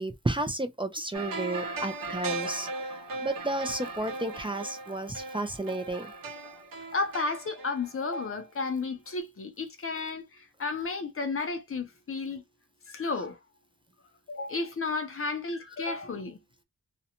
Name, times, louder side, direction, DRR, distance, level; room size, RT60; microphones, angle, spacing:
voice 1, 0.0-2.7 3.2-6.1, right 2 dB, 15° right, 0.3 m, -32 dB
sound 1, 1.1-8.8 9.1-9.2, right 3 dB, 65° right, 0.8 m, -38 dB
voice 2, 6.9-12.4 12.9-13.4 14.3-16.4, left 3 dB, 40° left, 0.5 m, -32 dB
2.5 x 2.1 x 2.8 m
wide cardioid pair, 175°, 36 cm